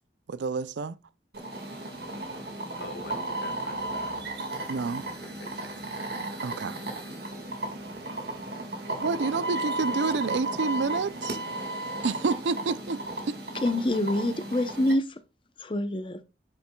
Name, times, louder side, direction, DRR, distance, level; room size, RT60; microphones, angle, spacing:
voice 1, 0.3-1.0 4.7-5.1 6.4-6.8 9.0-11.4 12.0-13.0, right 4 dB, 80° right, 0.5 m, -28 dB
sound 1, 1.3-14.9, right 2 dB, 60° right, 1.8 m, -34 dB
voice 2, 2.8-4.1 5.0-5.8, left 2 dB, 60° left, 1.6 m, -44 dB
voice 3, 13.6-15.2 15.6-16.2, left 1 dB, 30° left, 0.7 m, -26 dB
8.4 x 6.7 x 2.3 m
head